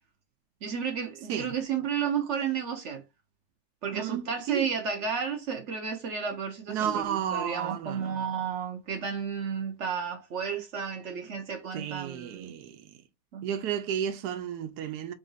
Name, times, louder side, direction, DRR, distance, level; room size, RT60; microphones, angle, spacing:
voice 1, 0.6-3.0 3.8-12.5 13.3-13.4, right 6 dB, 60° right, 0.8 m, -32 dB
voice 2, 3.9-4.7 6.7-8.3 11.7-13.0 13.4-15.1, right 9 dB, 75° right, 1.1 m, -33 dB
3.8 x 2.6 x 3.9 m
omnidirectional pair, 1.9 m